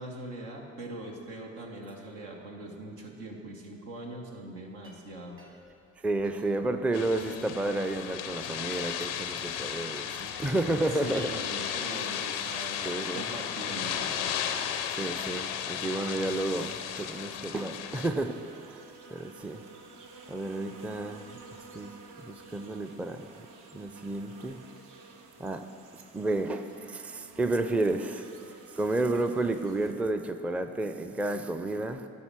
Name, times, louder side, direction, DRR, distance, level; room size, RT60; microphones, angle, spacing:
voice 1, 0.0-5.4 11.0-14.1, right 1 dB, 80° right, 0 dB, 1.2 m, -41 dB
sound 1, 4.7-12.8, right 2 dB, 35° right, 1.7 m, -55 dB
voice 2, 6.0-11.4 12.8-13.3 14.9-18.4 18.7-18.8 19.1-19.6 20.3-21.2 21.7-21.9 22.2-23.3 23.7-24.6 25.4-25.7 26.1-32.1, right 2 dB, 5° right, 8 dB, 0.4 m, -31 dB
sound 2, 6.9-18.1, left 9 dB, 90° left, 0.5 m, -35 dB
sound 3, 17.9-29.9, right 4 dB, 60° right, 0.9 m, -51 dB
11.0 x 4.2 x 6.0 m, 2.5 s
hypercardioid pair, 50°, 35 cm